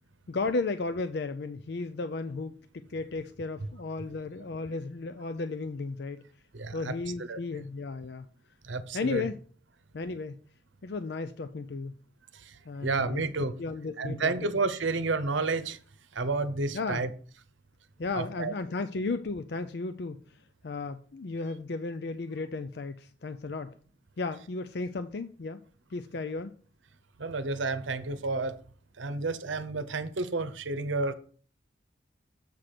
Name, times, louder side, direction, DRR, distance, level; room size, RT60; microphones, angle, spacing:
voice 1, 0.3-6.2 6.7-8.3 8.9-9.4 9.9-10.4 10.8-11.9 12.7-13.2 13.6-14.5 16.7-17.1 18.0-20.4 20.6-23.7 24.2-25.6 25.9-26.5, left 3 dB, 55° left, 10 dB, 0.5 m, -34 dB
voice 2, 6.5-6.9 7.3-7.4 8.6-9.2 12.3-13.5 14.0-15.8 16.1-17.1 18.1-18.5 27.2-28.6 29.0-31.1, right 3 dB, 80° right, 13 dB, 0.8 m, -31 dB
7.5 x 5.9 x 4.9 m, 0.43 s
head